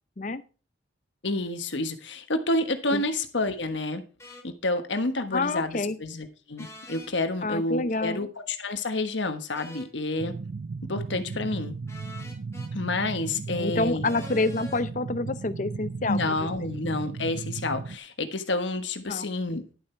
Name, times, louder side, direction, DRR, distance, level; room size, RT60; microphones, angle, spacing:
voice 1, 1.2-4.0 4.4-10.4 10.9-11.7 12.7-14.0 16.1-19.6, left 2 dB, 80° left, 8 dB, 1.3 m, -29 dB
sound 1, 4.2-4.4 6.6-7.1 9.5-9.9 11.9-12.7 14.0-14.8, left 1 dB, 15° left, 1.6 m, -45 dB
voice 2, 5.3-6.0 7.4-8.2 13.5-16.2 19.1-19.2, left 3 dB, 45° left, 14 dB, 0.6 m, -28 dB
sound 2, 10.2-18.0, right 4 dB, 60° right, 0.5 m, -36 dB
11.0 x 7.1 x 4.5 m, 0.35 s
head